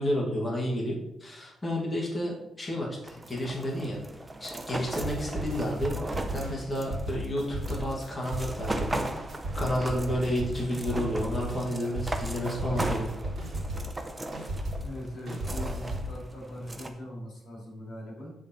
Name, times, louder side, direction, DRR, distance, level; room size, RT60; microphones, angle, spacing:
voice 1, 0.0-4.0 4.4-8.9 9.5-13.1, equal, 10° left, -4 dB, 1.5 m, -31 dB
sound 1, 3.0-16.9, right 1 dB, 15° right, 0.5 m, -38 dB
sound 2, 4.9-14.9 15.3-16.1, equal, 50° right, 2.3 m, -35 dB
voice 2, 14.8-18.3, left 1 dB, 50° left, -3 dB, 2.6 m, -41 dB
8.1 x 3.8 x 4.1 m, 0.84 s
wide cardioid pair, 170°, 0 cm